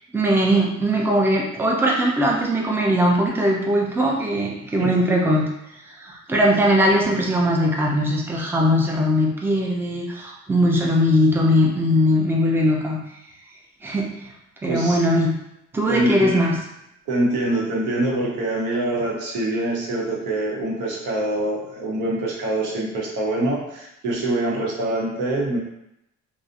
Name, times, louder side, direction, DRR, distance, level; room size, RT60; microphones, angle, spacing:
voice 1, 0.1-5.4 6.0-13.0 13.8-14.3 14.6-15.3 15.7-16.5, equal, 5° right, -1 dB, 0.4 m, -20 dB
voice 2, 4.6-5.0 14.6-15.0 15.9-16.4 17.1-25.6, right 1 dB, 85° right, -4 dB, 0.8 m, -24 dB
2.4 x 2.0 x 2.5 m, 0.83 s
cardioid pair, 90°, 30 cm